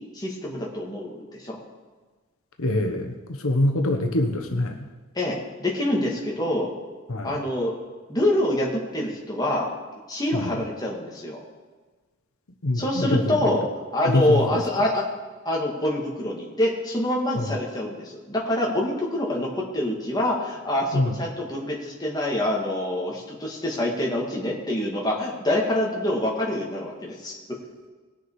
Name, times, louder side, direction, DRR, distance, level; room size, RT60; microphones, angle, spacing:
voice 1, 0.0-1.6 5.1-6.7 7.2-7.8 8.1-9.7 10.1-11.4 12.8-15.0 15.5-27.4, left 1 dB, 20° left, -2 dB, 2.1 m, -26 dB
voice 2, 2.6-4.9 7.1-7.4 10.3-10.6 12.6-13.5 14.0-14.6 17.4-17.6 20.9-21.1, left 1 dB, 80° left, 4 dB, 1.1 m, -24 dB
20.0 x 6.9 x 4.8 m, 1.3 s
head